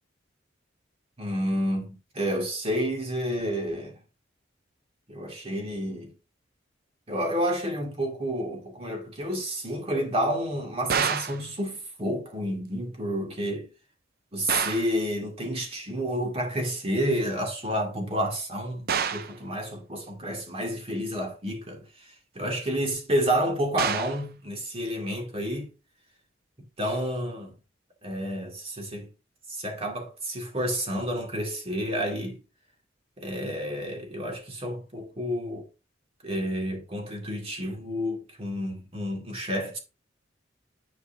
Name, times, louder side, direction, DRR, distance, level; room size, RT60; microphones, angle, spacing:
voice 1, 1.2-4.0 5.1-6.1 7.1-13.7 14.3-25.7 26.8-27.5 28.0-29.1 29.5-32.4 33.2-35.7 36.2-39.8, equal, 30° right, 2.2 m, -30 dB
sound 1, 10.9-11.4 14.5-15.0 18.9-19.4 23.8-24.2, right 7 dB, 55° right, 0.6 m, -28 dB
10.0 x 4.6 x 2.7 m
head